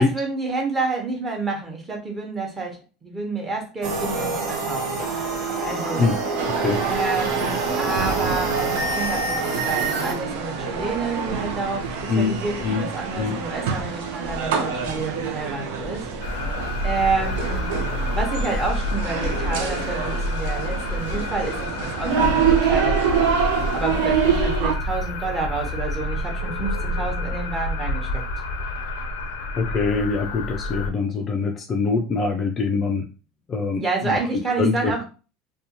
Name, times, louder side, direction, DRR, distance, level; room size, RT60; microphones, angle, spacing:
voice 1, 0.0-5.0 5.6-6.1 6.8-9.4 9.7-16.1 16.8-17.7 18.1-23.3 23.7-28.2 33.7-35.1, right 3 dB, 20° right, 0 dB, 0.9 m, -29 dB
sound 1, 3.8-10.1, right 3 dB, 55° right, 0.8 m, -26 dB
sound 2, 6.4-24.7, right 6 dB, 85° right, 0.5 m, -26 dB
sound 3, 16.2-30.9, left 1 dB, 85° left, 0.5 m, -28 dB
voice 2, 29.6-33.0 33.5-34.2 34.6-34.9, left 4 dB, 25° left, 3 dB, 0.3 m, -23 dB
2.6 x 2.2 x 2.9 m, 0.33 s
supercardioid pair, 145°, 0 cm